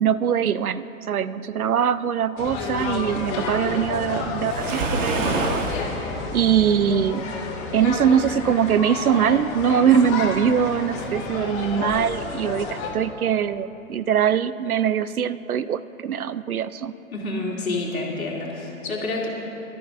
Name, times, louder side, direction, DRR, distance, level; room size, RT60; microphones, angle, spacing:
voice 1, 0.0-5.6 6.3-7.3 7.7-16.9, right 8 dB, 85° right, 16 dB, 0.5 m, -22 dB
sound 1, 2.4-12.9, left 4 dB, 35° left, 2.2 m, -30 dB
Waves surf, 4.4-5.9, right 3 dB, 60° right, 1.5 m, -26 dB
voice 2, 17.1-19.3, left 2 dB, 75° left, -3 dB, 2.8 m, -28 dB
20.5 x 13.0 x 2.6 m, 3.0 s
figure-of-eight pair, 115°, 42 cm